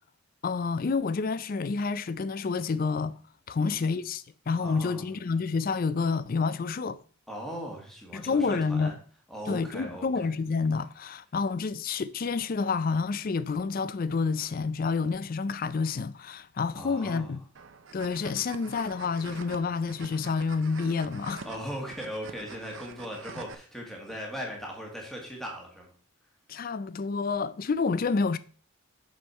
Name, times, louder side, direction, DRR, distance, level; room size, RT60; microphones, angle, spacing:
voice 1, 0.4-3.2 3.5-7.0 8.1-8.9 9.5-17.4 17.9-21.5 26.5-28.4, left 4 dB, 40° left, 0.4 m, -29 dB
voice 2, 3.5-3.9 4.6-5.0 7.3-9.0 9.3-10.1 16.7-17.3 21.4-25.9, equal, ahead, 1.7 m, -39 dB
sound 1, 17.5-23.5, right 5 dB, 60° right, 0.6 m, -46 dB
6.4 x 6.3 x 4.3 m
head